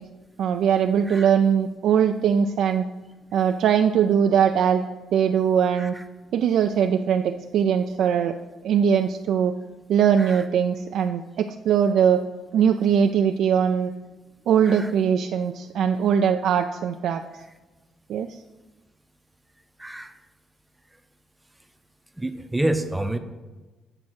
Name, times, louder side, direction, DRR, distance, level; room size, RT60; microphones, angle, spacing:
voice 1, 0.4-2.8 3.3-4.8 5.1-5.9 6.3-8.4 8.6-9.5 9.9-12.2 12.5-13.9 14.5-17.2 18.1-18.4, right 8 dB, 75° right, 6 dB, 0.3 m, -21 dB
voice 2, 19.8-20.1 22.2-23.2, right 1 dB, 10° right, 8 dB, 0.6 m, -28 dB
7.7 x 3.6 x 6.1 m, 1.2 s
cardioid pair, 90°, 0 cm